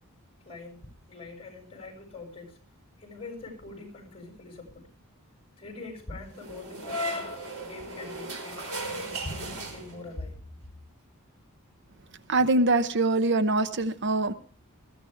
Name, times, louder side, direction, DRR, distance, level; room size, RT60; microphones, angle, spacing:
voice 1, 0.4-0.8 1.1-2.6 3.0-4.8 5.6-10.4, left 2 dB, 25° left, 3 dB, 6.9 m, -43 dB
sound 1, 6.3-10.2, right 1 dB, 75° right, 5.1 m, -36 dB
voice 2, 12.3-14.3, right 2 dB, 55° right, 12 dB, 0.9 m, -23 dB
20.5 x 14.5 x 3.4 m, 0.40 s
head